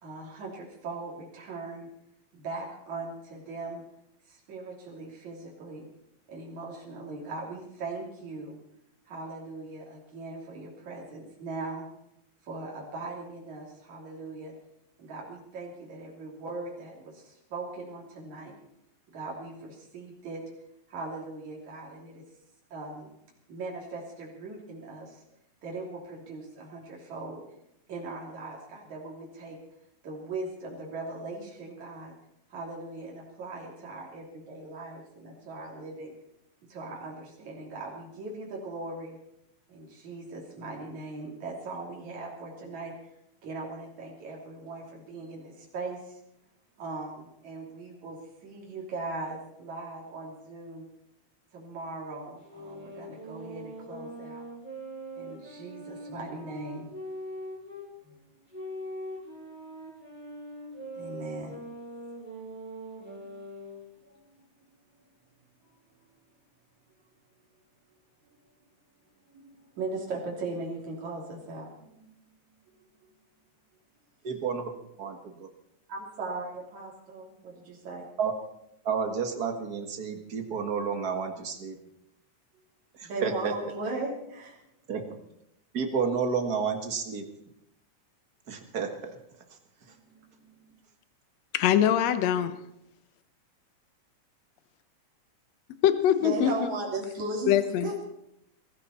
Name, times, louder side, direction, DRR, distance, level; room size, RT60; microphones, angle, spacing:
voice 1, 0.0-1.9 2.3-3.8 4.3-5.9 6.3-8.6 9.1-11.8 12.4-14.5 15.0-18.6 19.1-20.4 20.9-22.2 22.7-23.1 23.5-25.2 25.6-27.4 27.9-29.6 30.0-32.1 32.5-36.2 36.7-39.2 39.7-43.1 43.4-46.2 46.8-50.9 51.5-54.5 55.2-56.9 58.0-58.2 60.9-61.6 63.5-63.6 64.0-64.8 65.6-65.7 66.0-66.1 69.3-72.1 72.8-73.1 75.9-78.1 83.0-84.6 89.8-90.7 96.2-97.6 97.8-98.1, right 3 dB, 75° right, -2 dB, 4.5 m, -39 dB
sound 1, 52.4-57.9 58.5-63.9, right 1 dB, 5° right, 6.2 m, -42 dB
voice 2, 74.2-74.7 75.0-75.1 78.2-78.3 78.8-81.8 82.9-83.5 84.9-85.0 85.7-87.3 88.5-89.2, right 6 dB, 40° right, 5 dB, 1.7 m, -30 dB
voice 3, 91.5-92.5 95.8-96.5 97.5-97.9, left 10 dB, 70° left, 11 dB, 2.1 m, -23 dB
22.0 x 14.5 x 4.3 m, 0.80 s
omnidirectional pair, 3.3 m